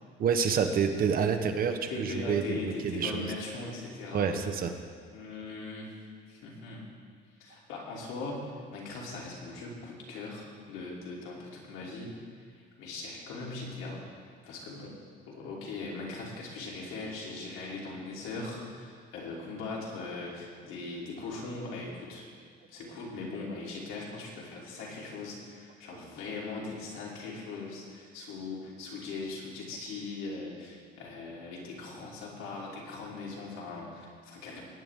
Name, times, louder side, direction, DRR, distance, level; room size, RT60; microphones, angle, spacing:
voice 1, 0.2-3.3 4.1-4.7, right 6 dB, 45° right, 6 dB, 1.0 m, -28 dB
voice 2, 1.9-4.3 5.1-5.9 6.3-6.8 7.4-12.2 12.5-14.0 14.4-15.0 15.3-22.3 22.7-34.6, left 3 dB, 80° left, -4 dB, 3.1 m, -40 dB
18.5 x 9.3 x 3.6 m, 2.1 s
cardioid pair, 140°, 21 cm